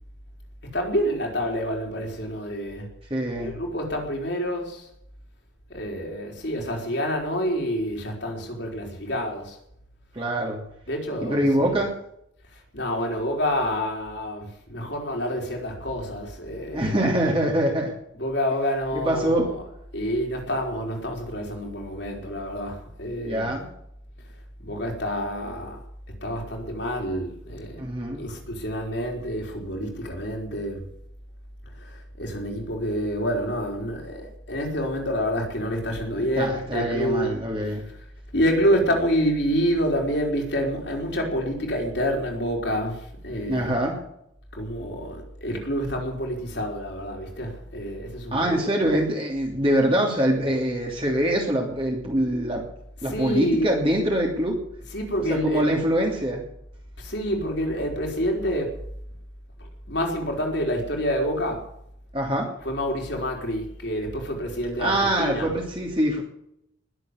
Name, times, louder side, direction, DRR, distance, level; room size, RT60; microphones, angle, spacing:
voice 1, 0.7-2.9 3.3-4.9 5.7-9.6 10.9-11.7 12.5-17.1 18.1-23.6 24.6-25.8 26.2-27.8 28.2-30.9 31.8-37.8 38.3-43.8 44.5-48.9 53.0-53.8 54.9-55.8 57.0-58.8 59.6-61.7 62.6-65.5, equal, 55° left, 4.3 m, -28 dB
voice 2, 3.1-3.5 10.1-10.6 11.2-11.9 16.7-17.9 18.9-19.5 23.2-23.7 27.8-28.2 36.4-37.8 43.5-44.0 48.3-52.6 53.0-54.6 55.3-56.4 62.1-62.5 64.8-66.2, right 1 dB, 25° right, 3.0 m, -24 dB
20.5 x 7.8 x 8.3 m
head